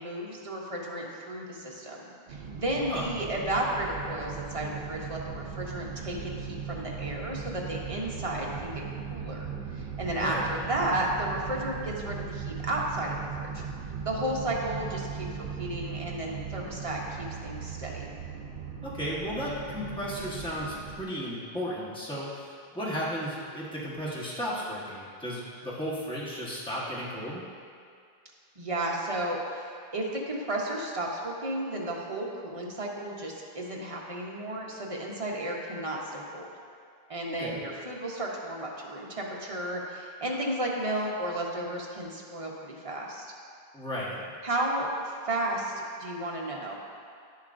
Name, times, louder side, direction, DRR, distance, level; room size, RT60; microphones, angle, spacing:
voice 1, 0.0-2.0 2.3-8.8 9.1-9.5 9.8-13.6 14.0-15.3 15.6-18.0 28.6-29.7 29.9-36.5 37.1-43.3 44.4-46.8, right 1 dB, 35° right, -2 dB, 1.0 m, -33 dB
sound 1, 2.3-21.0, right 6 dB, 75° right, 0.8 m, -38 dB
voice 2, 10.1-10.4 18.8-27.4 37.4-37.6 43.7-44.2, equal, 5° left, -7 dB, 1.2 m, -34 dB
10.0 x 7.3 x 2.6 m, 2.3 s
omnidirectional pair, 1.0 m